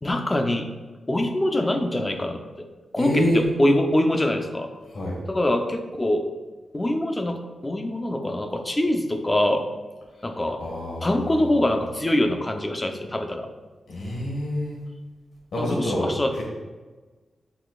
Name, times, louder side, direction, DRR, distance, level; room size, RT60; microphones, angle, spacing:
voice 1, 0.0-0.7 1.1-2.4 2.9-4.7 5.3-6.2 6.7-9.6 10.2-10.6 11.0-13.5 15.6-16.4, left 1 dB, 20° left, 4 dB, 0.7 m, -24 dB
voice 2, 3.0-3.4 4.9-5.2 10.6-11.4 13.9-14.8 15.5-16.1 16.4-16.5, left 1 dB, 70° left, -3 dB, 1.5 m, -26 dB
9.7 x 4.1 x 2.4 m, 1.3 s
wide cardioid pair, 110°, 0 cm